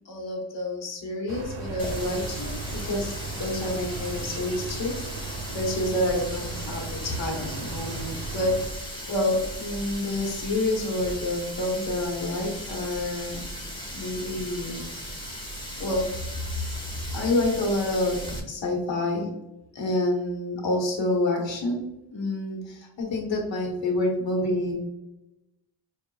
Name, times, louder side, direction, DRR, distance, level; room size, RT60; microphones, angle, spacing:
voice 1, 0.0-13.4 13.9-14.9 15.8-16.1 16.7-19.3 19.7-21.8 22.1-24.7, left 1 dB, 65° left, 0 dB, 1.2 m, -28 dB
sound 1, 1.3-8.7, right 4 dB, 50° right, 0.8 m, -37 dB
Water tap faucet, 1.8-18.4, equal, 10° left, 1.0 m, -37 dB
4.7 x 2.5 x 2.3 m, 0.92 s
cardioid pair, 70°, 47 cm